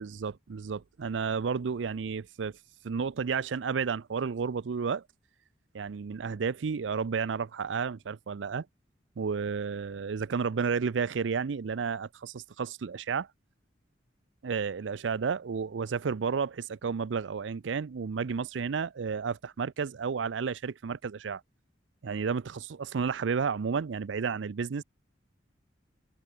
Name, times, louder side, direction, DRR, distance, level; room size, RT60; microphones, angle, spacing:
voice 1, 0.0-2.5 2.8-5.0 5.7-8.7 9.2-13.3 14.4-21.4 22.0-24.8, right 5 dB, 80° right, 0.5 m, -32 dB
head